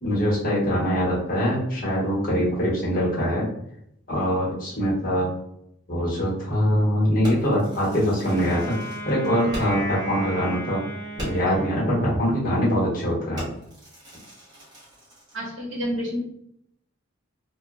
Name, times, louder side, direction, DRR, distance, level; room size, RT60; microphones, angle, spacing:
voice 1, 0.0-3.5 4.1-5.3 5.9-8.7 9.0-10.8 11.2-13.5, equal, 45° left, -6 dB, 1.0 m, -23 dB
Fireworks, 7.2-10.0 10.3-10.4 10.7-10.8 11.2-11.6 12.2-12.4 12.8-13.0 13.4-15.4, equal, 20° right, 1.0 m, -40 dB
Wind instrument woodwind instrument, 8.2-12.4, equal, 40° right, 1.4 m, -36 dB
voice 2, 15.3-16.2, equal, 70° right, -2 dB, 0.9 m, -29 dB
2.9 x 2.2 x 2.3 m, 0.76 s
head